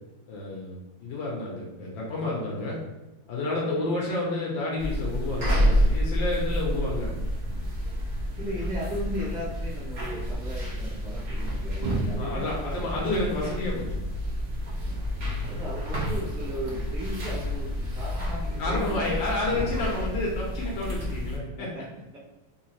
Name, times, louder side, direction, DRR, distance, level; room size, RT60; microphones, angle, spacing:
voice 1, 0.3-2.8 3.3-7.1 12.2-14.0 18.6-21.7, left 2 dB, 85° left, -3 dB, 1.6 m, -30 dB
sound 1, 4.8-21.4, equal, 50° right, 0.5 m, -29 dB
voice 2, 8.4-13.1 13.4-13.8 15.4-20.2 20.6-20.9 21.6-22.2, equal, 5° right, -9 dB, 0.9 m, -37 dB
3.9 x 2.7 x 3.0 m, 1.0 s
omnidirectional pair, 2.0 m